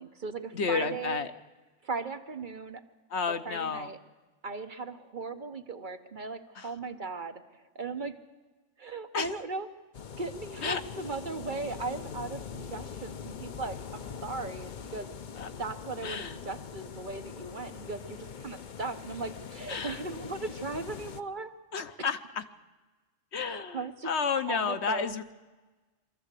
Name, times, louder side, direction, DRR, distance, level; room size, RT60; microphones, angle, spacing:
voice 1, 0.0-1.3 1.8-2.8 3.3-4.0 4.4-7.4 7.7-8.1 8.8-9.7 10.2-15.1 15.6-21.5 22.0-22.1 23.5-24.1 24.5-25.2, right 3 dB, 45° right, 8 dB, 1.0 m, -37 dB
voice 2, 0.5-1.3 3.1-3.9 6.6-6.7 9.1-9.3 10.6-10.8 15.4-15.5 16.0-16.4 19.7-20.0 21.7-22.4 23.3-25.2, left 5 dB, 65° left, 9 dB, 1.2 m, -31 dB
sound 1, 9.9-21.2, left 7 dB, 45° left, 0.8 m, -43 dB
23.5 x 14.0 x 8.3 m, 1.2 s
omnidirectional pair, 1.2 m